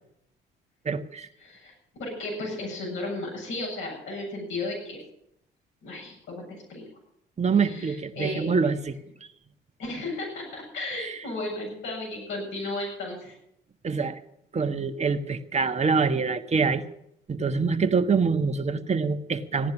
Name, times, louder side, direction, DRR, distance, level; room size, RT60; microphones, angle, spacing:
voice 1, 0.8-1.3 7.4-8.9 10.9-11.2 13.8-14.2 14.5-16.8 17.3-19.7, right 5 dB, 35° right, 6 dB, 1.4 m, -25 dB
voice 2, 1.4-1.7 2.0-5.0 5.8-6.8 7.6-8.5 9.8-13.3, left 2 dB, 75° left, -1 dB, 7.7 m, -34 dB
16.5 x 10.5 x 7.2 m, 0.76 s
supercardioid pair, 60°, 20 cm